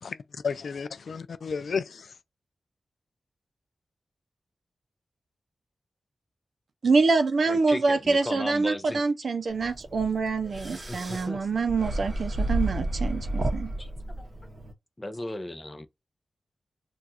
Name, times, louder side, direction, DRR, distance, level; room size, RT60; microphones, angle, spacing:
voice 1, 0.0-2.1, left 5 dB, 75° left, 0.3 m, -33 dB
voice 2, 6.8-13.7, right 4 dB, 65° right, 0.5 m, -25 dB
voice 3, 7.5-9.0 10.5-11.5 13.8-14.3 15.0-15.9, left 1 dB, 20° left, 0.5 m, -36 dB
sound 1, 9.6-14.7, right 1 dB, 35° right, 0.8 m, -31 dB
2.4 x 2.3 x 4.0 m
wide cardioid pair, 105°, 0 cm